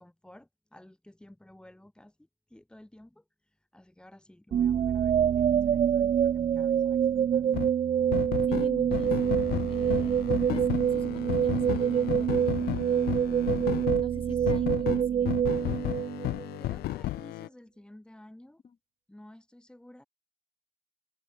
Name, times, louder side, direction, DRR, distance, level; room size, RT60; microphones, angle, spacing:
voice 1, 0.0-3.2 3.7-7.5 14.3-14.7 16.6-18.6 19.1-20.0, left 1 dB, 5° left, 6.6 m, -53 dB
sound 1, 4.5-16.6, right 9 dB, 35° right, 0.4 m, -26 dB
sound 2, 7.5-7.7 8.1-14.0 14.5-17.5, left 16 dB, 65° left, 0.5 m, -33 dB
voice 2, 8.5-13.0 14.0-15.4 18.6-18.8, left 6 dB, 30° left, 3.9 m, -47 dB
cardioid pair, 110°, 17 cm